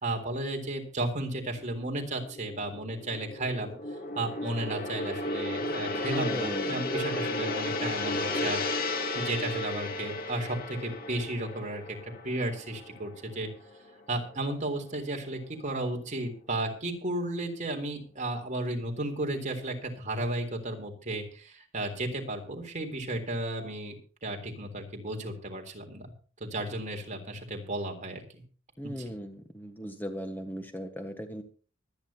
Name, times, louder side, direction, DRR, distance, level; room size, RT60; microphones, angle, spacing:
voice 1, 0.0-3.7 4.2-8.6 9.1-13.5 14.1-23.9 24.2-26.0 26.4-28.4 28.8-28.9, right 1 dB, 40° right, 2 dB, 3.7 m, -34 dB
Gong, 1.5-13.9 14.2-14.5, left 2 dB, 50° left, 2.3 m, -34 dB
voice 2, 6.1-6.8 28.8-31.4, equal, 10° left, 5 dB, 1.4 m, -37 dB
24.5 x 9.7 x 2.9 m, 0.40 s
head